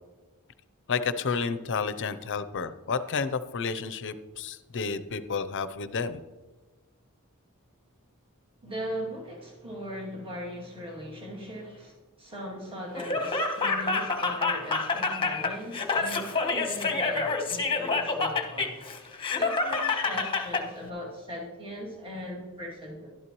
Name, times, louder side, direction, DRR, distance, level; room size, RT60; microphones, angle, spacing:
voice 1, 0.9-6.2, left 5 dB, 55° left, 12 dB, 0.6 m, -31 dB
voice 2, 8.6-23.1, equal, 25° right, -4 dB, 2.5 m, -39 dB
Laughter, 12.9-20.6, left 3 dB, 25° left, 1.1 m, -28 dB
12.0 x 11.5 x 3.1 m, 1.2 s
head